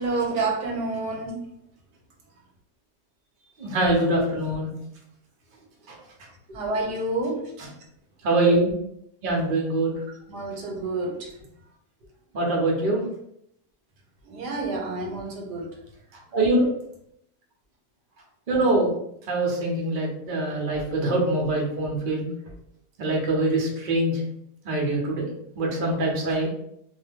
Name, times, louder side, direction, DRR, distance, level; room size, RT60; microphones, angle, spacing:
voice 1, 0.0-1.4 6.5-7.5 10.3-11.3 14.3-15.7, right 3 dB, 80° right, 0 dB, 1.3 m, -28 dB
voice 2, 3.6-4.7 5.9-6.0 8.2-8.7 9.2-9.9 12.3-13.0 16.3-16.7 18.5-18.9 19.3-22.3 23.0-24.2 24.6-25.3 25.5-26.5, right 2 dB, 45° right, -2 dB, 0.6 m, -23 dB
2.7 x 2.2 x 3.4 m, 0.75 s
omnidirectional pair, 1.8 m